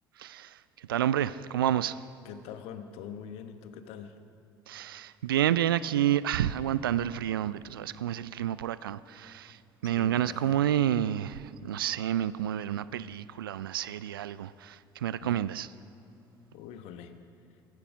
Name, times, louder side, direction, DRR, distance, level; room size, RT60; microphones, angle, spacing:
voice 1, 0.2-2.1 4.7-15.7, right 11 dB, 80° right, 0.4 m, -29 dB
voice 2, 2.2-4.1 9.8-10.6 15.2-15.4 16.5-17.2, left 8 dB, 60° left, 1.0 m, -44 dB
16.0 x 14.5 x 5.0 m
figure-of-eight pair, 60°, 12 cm